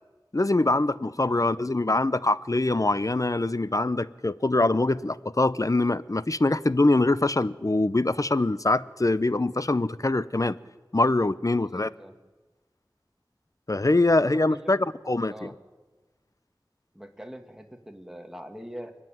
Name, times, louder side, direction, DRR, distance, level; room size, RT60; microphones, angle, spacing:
voice 1, 0.3-10.6 10.9-11.9 13.7-14.8 15.1-15.3, left 2 dB, 40° left, 16 dB, 0.7 m, -23 dB
voice 2, 1.3-2.0 11.6-12.2 14.2-14.9 15.3-15.6 16.9-19.0, equal, 5° right, 4 dB, 2.2 m, -44 dB
28.5 x 10.0 x 9.2 m, 1.2 s
wide cardioid pair, 45°, 8 cm